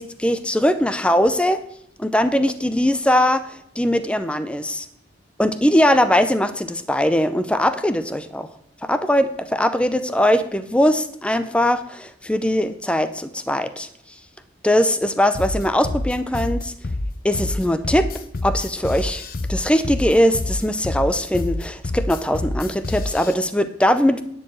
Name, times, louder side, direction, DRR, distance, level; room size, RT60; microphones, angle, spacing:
voice 1, 0.0-1.6 2.0-4.9 5.4-8.5 8.8-13.9 14.6-16.7 17.2-18.1 18.4-19.2 19.5-24.2, equal, 5° left, 11 dB, 0.5 m, -20 dB
sound 1, 15.3-23.3, left 2 dB, 50° left, 0.7 m, -27 dB
10.5 x 4.6 x 7.7 m, 0.71 s
head